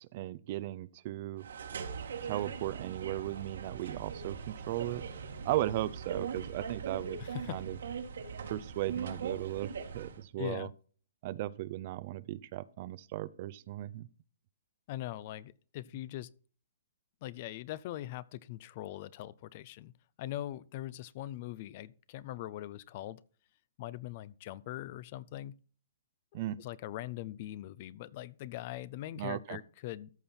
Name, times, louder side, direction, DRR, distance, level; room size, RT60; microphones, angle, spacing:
voice 1, 0.0-1.5 2.2-5.0 5.4-7.2 7.5-7.8 8.5-10.7 11.2-14.1 26.3-26.6 29.2-29.6, right 15 dB, 40° right, 0.5 m, -36 dB
sound 1, 1.4-10.2, right 6 dB, 80° right, 2.1 m, -41 dB
voice 2, 7.2-7.6 10.4-10.7 14.9-16.3 17.2-19.9 20.2-23.2 23.8-25.6 26.3-30.1, left 14 dB, 40° left, 0.5 m, -41 dB
14.0 x 5.6 x 4.3 m
hypercardioid pair, 150°, 0 cm